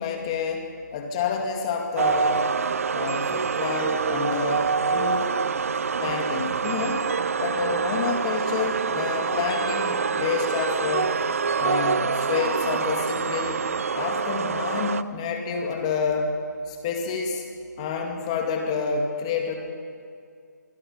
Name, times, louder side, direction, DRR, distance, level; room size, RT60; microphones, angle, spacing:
voice 1, 0.0-2.5 2.9-5.3 6.0-7.0 7.4-11.2 11.6-13.6 13.9-16.3 16.7-17.5 17.8-19.5, left 5 dB, 20° left, 3 dB, 2.2 m, -28 dB
sound 1, 2.0-15.0, right 5 dB, 45° right, 0.7 m, -26 dB
25.0 x 24.0 x 5.7 m, 2.3 s
hypercardioid pair, 170°, 10 cm